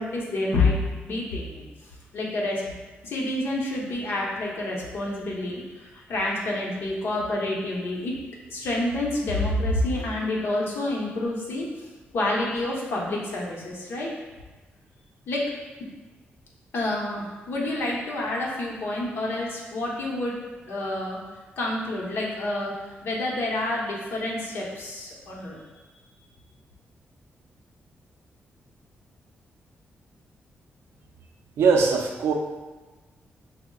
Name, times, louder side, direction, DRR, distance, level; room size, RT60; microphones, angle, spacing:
voice 1, 0.0-1.6 2.1-2.7 3.0-8.1 8.5-11.9 12.1-14.1 15.3-15.5 16.7-21.2 21.6-25.6, left 2 dB, 65° left, -3 dB, 0.8 m, -28 dB
voice 2, 31.6-32.3, right 5 dB, 85° right, 2 dB, 0.4 m, -20 dB
5.6 x 2.0 x 2.3 m, 1.3 s
cardioid pair, 120°, 4 cm